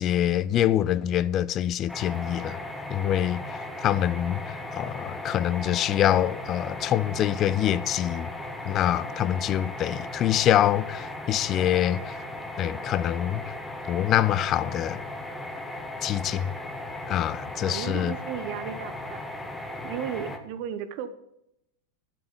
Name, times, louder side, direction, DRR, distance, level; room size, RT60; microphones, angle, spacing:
voice 1, 0.0-2.6 2.9-8.3 8.6-12.2 12.6-13.4 13.9-15.0 16.0-16.5 17.1-18.1, left 11 dB, 30° left, 0.5 m, -25 dB
sound 1, 1.9-20.4, left 1 dB, 5° left, 1.4 m, -37 dB
voice 2, 17.5-19.2 19.6-21.1, right 9 dB, 45° right, 0.8 m, -35 dB
12.0 x 7.8 x 6.7 m
figure-of-eight pair, 90°, 0 cm